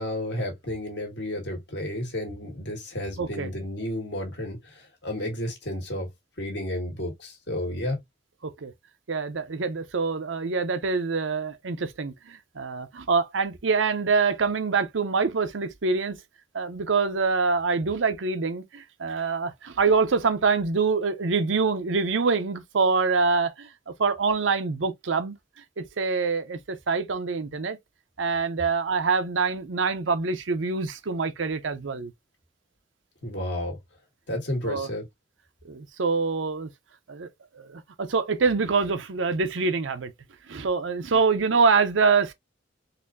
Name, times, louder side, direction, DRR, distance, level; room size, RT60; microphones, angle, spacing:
voice 1, 0.0-6.1 6.4-8.0 33.2-33.8 34.3-35.0, left 1 dB, 65° left, 1.6 m, -32 dB
voice 2, 3.2-3.5 8.4-8.7 9.1-16.2 16.5-23.7 24.0-25.3 25.8-27.8 28.2-32.1 34.6-34.9 35.6-36.7 37.1-37.3 37.5-40.1 40.5-42.3, right 4 dB, 90° right, 0.7 m, -25 dB
4.1 x 2.6 x 2.5 m
head